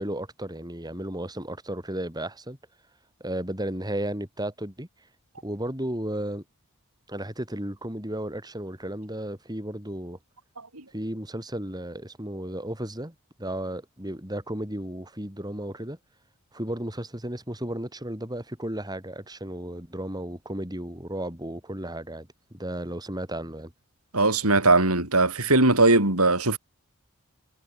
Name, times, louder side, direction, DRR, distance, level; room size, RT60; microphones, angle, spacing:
voice 1, 0.0-2.6 3.2-4.9 5.4-6.4 7.1-10.2 10.9-16.0 16.5-23.7, right 1 dB, 20° right, 5.7 m, -34 dB
voice 2, 24.1-26.6, right 2 dB, 75° right, 6.6 m, -20 dB
head